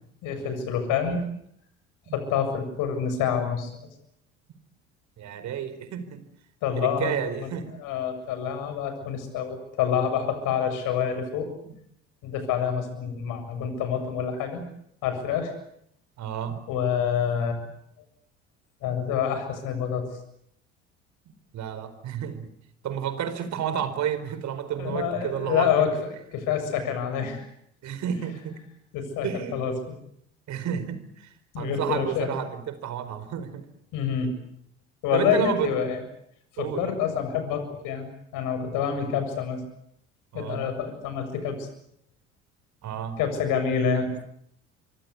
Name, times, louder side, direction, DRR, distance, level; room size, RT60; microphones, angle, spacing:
voice 1, 0.2-1.2 2.1-3.7 6.6-7.1 7.4-7.5 7.8-11.5 12.2-14.6 15.0-15.5 16.7-17.6 18.8-20.1 24.8-26.0 26.3-27.5 28.9-29.7 31.5-32.3 33.9-34.3 35.0-36.0 36.5-38.1 38.3-39.6 40.3-41.7 43.2-44.1, left 7 dB, 60° left, 9 dB, 7.3 m, -27 dB
voice 2, 5.2-6.2 6.8-7.8 16.2-16.7 21.5-22.5 22.8-25.7 27.8-28.6 29.2-29.6 30.5-33.7 34.2-34.3 35.1-35.7 36.6-36.9 40.3-40.7 42.8-43.2 43.9-44.0, right 8 dB, 50° right, 12 dB, 4.4 m, -31 dB
25.0 x 24.5 x 8.4 m, 0.74 s
hypercardioid pair, 60°, 35 cm